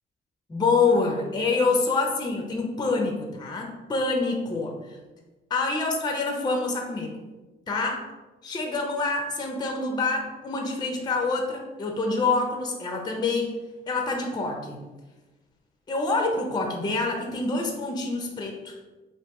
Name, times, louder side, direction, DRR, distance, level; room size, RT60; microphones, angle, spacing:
voice 1, 0.5-5.0 5.5-7.1 7.7-8.1 8.4-13.5 13.9-14.8 15.9-18.7, left 3 dB, 20° left, 2 dB, 0.5 m, -26 dB
2.8 x 2.5 x 3.4 m, 1.2 s
cardioid pair, 90°, 20 cm